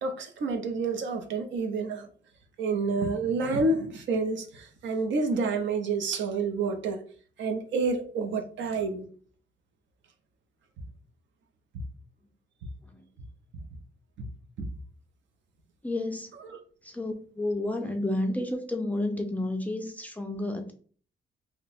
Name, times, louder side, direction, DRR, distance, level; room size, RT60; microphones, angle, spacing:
voice 1, 0.0-2.1 2.6-7.0 7.4-9.1 14.6-14.7 16.5-16.6, right 3 dB, 75° right, 0.7 m, -29 dB
voice 2, 15.8-16.3 16.8-20.7, left 1 dB, 10° left, 0.3 m, -31 dB
2.9 x 2.1 x 4.1 m
wide cardioid pair, 175°, 19 cm